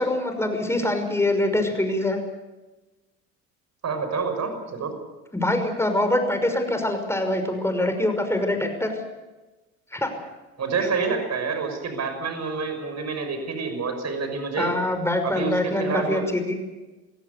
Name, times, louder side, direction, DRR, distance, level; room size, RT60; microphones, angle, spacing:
voice 1, 0.0-2.2 5.3-8.9 9.9-10.1 14.6-16.6, left 1 dB, 5° left, 6 dB, 5.9 m, -24 dB
voice 2, 3.8-4.9 10.6-14.7 15.2-16.2, right 5 dB, 40° right, 7 dB, 6.2 m, -28 dB
27.5 x 16.5 x 6.9 m, 1.1 s
hypercardioid pair, 75°, 42 cm